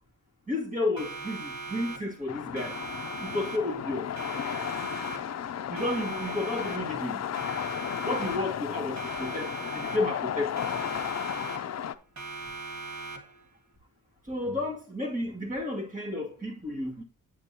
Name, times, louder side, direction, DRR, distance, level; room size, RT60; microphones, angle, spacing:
voice 1, 0.5-2.7 3.2-4.1 5.7-7.2 8.0-10.7 14.3-17.0, left 2 dB, 25° right, 2.3 m, -32 dB
Siren, 1.0-2.3 2.6-3.9 4.2-5.5 5.8-7.1 7.4-8.7 9.0-10.3 10.6-11.9 12.2-13.5, right 3 dB, 60° right, 1.8 m, -40 dB
sound 1, 2.3-11.9, left 9 dB, 55° left, 0.5 m, -34 dB
8.8 x 8.2 x 2.8 m
wide cardioid pair, 170°, 32 cm